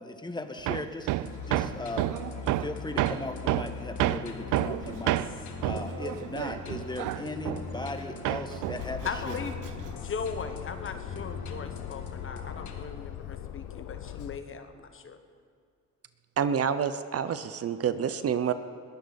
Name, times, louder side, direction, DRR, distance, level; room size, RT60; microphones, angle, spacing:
voice 1, 0.0-2.1 2.6-9.4, left 2 dB, 15° left, 7 dB, 1.4 m, -38 dB
Hammer, 0.7-8.0 8.2-10.0, right 15 dB, 85° right, 0.5 m, -30 dB
sound 1, 1.2-12.9, left 5 dB, 70° left, 1.8 m, -41 dB
Aircraft, 8.8-14.4, left 11 dB, 90° left, 0.8 m, -41 dB
voice 2, 9.0-9.5 9.9-15.2, left 5 dB, 45° left, 8 dB, 1.1 m, -38 dB
voice 3, 16.4-18.5, right 7 dB, 50° right, 11 dB, 0.8 m, -28 dB
21.0 x 15.5 x 4.1 m, 2.2 s
cardioid pair, 90°, 30 cm